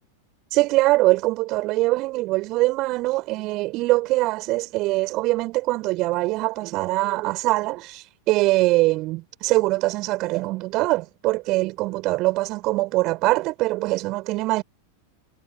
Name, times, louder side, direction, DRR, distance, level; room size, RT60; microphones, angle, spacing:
voice 1, 0.5-14.6, right 20 dB, 40° right, 6.1 m, -23 dB
figure-of-eight pair, 90°, 0 cm